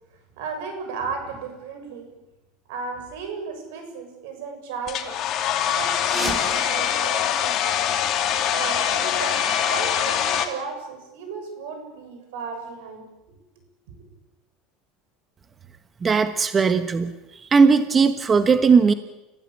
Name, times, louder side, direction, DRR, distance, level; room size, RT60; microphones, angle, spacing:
voice 1, 0.3-2.1 2.7-5.2 5.7-7.8 8.5-13.4 13.9-14.0, right 5 dB, 80° right, 6 dB, 6.9 m, -35 dB
Domestic sounds home sounds, 4.9-10.5, left 9 dB, 45° left, 2.8 m, -23 dB
sound 1, 6.0-8.6, equal, 5° right, 3.8 m, -34 dB
voice 2, 16.0-17.1 17.5-18.9, right 5 dB, 20° right, 10 dB, 1.2 m, -18 dB
29.5 x 15.0 x 8.6 m, 1.0 s
supercardioid pair, 140°, 0 cm